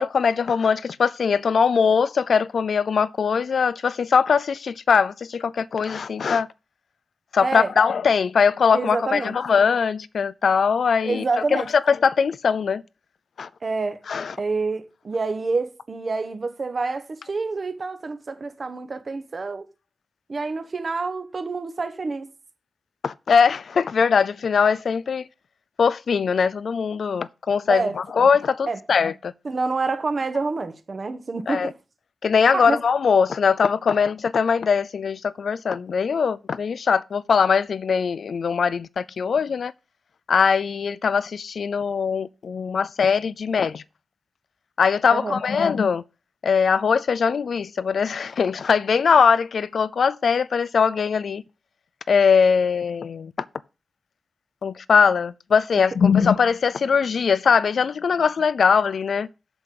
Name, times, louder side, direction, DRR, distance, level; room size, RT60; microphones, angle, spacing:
voice 1, 0.0-6.5 7.3-11.2 11.5-12.8 13.4-13.5 14.1-14.4 23.0-25.3 25.8-29.3 31.5-31.7 32.2-39.7 40.3-43.8 44.8-46.0 46.4-51.4 52.1-53.3 54.6-59.3, left 6 dB, 80° left, 0.4 m, -21 dB
voice 2, 8.7-9.4 11.0-11.7 13.6-14.0 14.4-19.6 20.3-22.3 27.7-28.0 28.7-28.8 29.4-31.7 32.5-32.8 45.1-45.4, right 3 dB, 45° right, 1.0 m, -27 dB
7.9 x 7.5 x 3.8 m
wide cardioid pair, 120°, 0 cm